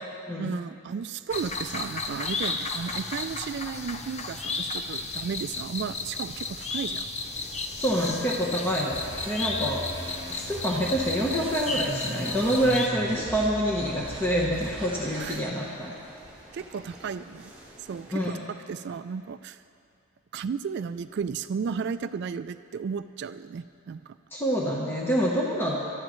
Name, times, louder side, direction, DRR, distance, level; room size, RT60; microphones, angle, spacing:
voice 1, 0.4-7.1 15.2-15.4 16.5-17.5 17.8-19.6 20.3-24.2, right 6 dB, 55° right, 12 dB, 0.3 m, -34 dB
sound 1, 1.3-12.9, left 3 dB, 30° left, 0.7 m, -34 dB
sound 2, 7.2-18.3, right 1 dB, 10° right, 2.8 m, -49 dB
voice 2, 7.8-9.0 9.3-9.8 10.3-15.9 18.1-18.5 24.3-25.8, equal, 10° left, -4 dB, 1.0 m, -27 dB
sound 3, 8.9-15.5, right 1 dB, 25° right, 1.1 m, -39 dB
23.0 x 13.0 x 3.1 m, 2.6 s
head